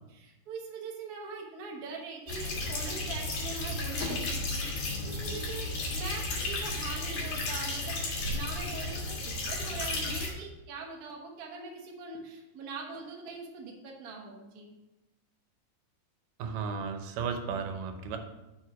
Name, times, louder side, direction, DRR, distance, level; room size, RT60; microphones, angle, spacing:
voice 1, 0.1-14.7, right 4 dB, 55° right, -1 dB, 1.1 m, -42 dB
sound 1, 2.3-10.3, left 2 dB, 85° left, 3.3 m, -33 dB
voice 2, 16.4-18.2, right 5 dB, 85° right, 6 dB, 2.4 m, -34 dB
6.4 x 4.7 x 5.9 m, 1.0 s
omnidirectional pair, 3.7 m